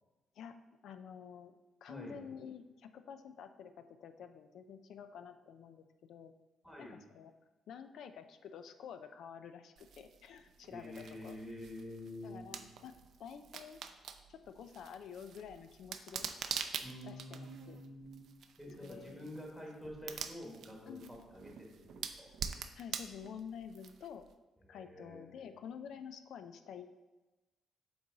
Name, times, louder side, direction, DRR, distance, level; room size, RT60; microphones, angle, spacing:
voice 1, 0.8-6.3 6.8-7.3 7.7-11.4 12.2-12.9 13.2-13.8 14.3-16.3 17.0-17.8 18.8-19.3 20.9-21.3 22.7-24.2 24.7-26.9, left 7 dB, 70° left, 9 dB, 0.4 m, -49 dB
voice 2, 1.9-2.2 6.6-7.0 10.7-12.6 16.8-18.3 18.6-21.0 21.3-22.3 24.7-25.4, left 1 dB, 5° left, -2 dB, 1.5 m, -48 dB
sound 1, 9.8-24.3, right 7 dB, 60° right, 0.4 m, -46 dB
7.0 x 3.9 x 3.9 m, 1.1 s
cardioid pair, 135°, 0 cm